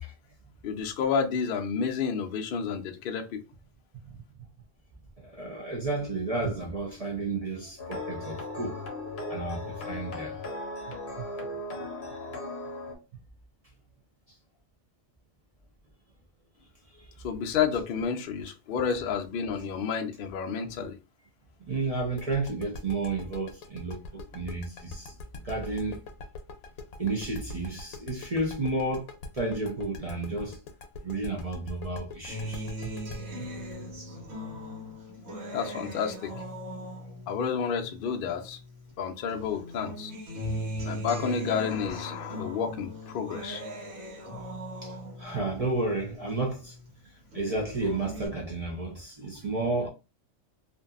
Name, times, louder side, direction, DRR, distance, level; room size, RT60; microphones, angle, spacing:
voice 1, 0.6-3.4 17.2-21.0 35.5-36.4 37.3-38.6 39.0-40.1 40.8-43.6, left 6 dB, 70° left, 0.5 m, -30 dB
voice 2, 5.2-8.8 9.3-10.4 11.2-11.3 16.9-17.0 21.7-25.1 25.4-26.0 27.0-29.1 29.3-30.6 31.0-32.9 33.4-33.5 44.8-46.8 47.3-49.9, right 2 dB, 50° right, 0.4 m, -32 dB
sound 1, 7.8-12.9, left 2 dB, 45° left, 0.8 m, -37 dB
sound 2, 22.2-34.9, left 3 dB, 90° left, 1.0 m, -42 dB
Acoustic guitar, 32.3-38.9 39.3-46.9 47.3-48.3, equal, 80° right, 1.4 m, -39 dB
2.6 x 2.5 x 2.3 m
omnidirectional pair, 1.4 m